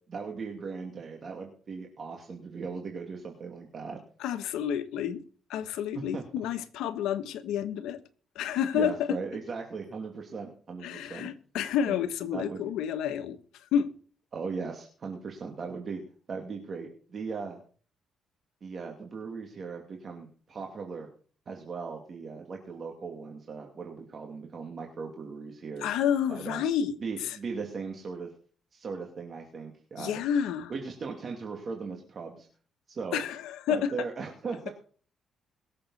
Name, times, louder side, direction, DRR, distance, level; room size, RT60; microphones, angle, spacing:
voice 1, 0.1-4.0 5.9-6.2 8.7-11.3 11.9-12.0 12.3-12.6 14.3-16.0 16.3-17.6 18.6-21.1 21.5-25.9 26.3-26.6 27.0-28.3 28.7-30.2 30.7-32.5 32.9-33.2 33.7-34.7, right 5 dB, 45° right, 2.5 m, -38 dB
voice 2, 4.2-5.2 5.5-8.0 8.3-9.2 10.8-13.9 25.8-26.9 27.2-27.4 30.0-30.7 33.1-33.9, left 8 dB, 90° left, 1.3 m, -30 dB
22.5 x 7.6 x 4.2 m
cardioid pair, 90°, 0 cm